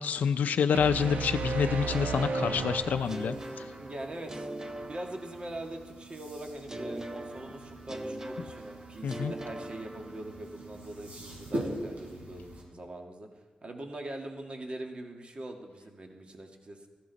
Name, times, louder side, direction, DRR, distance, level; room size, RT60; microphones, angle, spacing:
voice 1, 0.0-3.7 9.0-9.3, left 7 dB, 75° left, 8 dB, 0.4 m, -28 dB
sound 1, 0.7-3.7, right 3 dB, 75° right, 1.0 m, -33 dB
sound 2, 1.9-5.8 6.7-10.6, right 1 dB, 20° right, 0.9 m, -41 dB
sound 3, 2.7-12.6, right 1 dB, 60° right, 5.2 m, -43 dB
voice 2, 3.8-4.5 4.9-13.3 13.6-16.9, right 1 dB, 40° right, 3 dB, 1.9 m, -42 dB
14.5 x 14.0 x 4.1 m, 1.3 s
cardioid pair, 65°, 3 cm